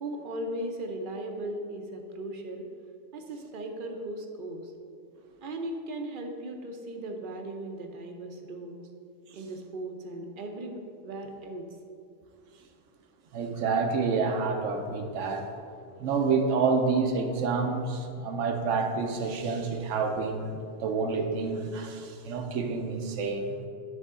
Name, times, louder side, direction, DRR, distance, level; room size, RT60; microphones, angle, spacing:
voice 1, 0.0-2.7 3.1-4.7 5.4-8.9 9.3-11.6, right 1 dB, 55° right, 4 dB, 0.7 m, -37 dB
voice 2, 13.3-15.5 16.0-23.6, right 4 dB, 80° right, 5 dB, 1.0 m, -28 dB
10.5 x 3.6 x 3.6 m, 2.4 s
omnidirectional pair, 1.2 m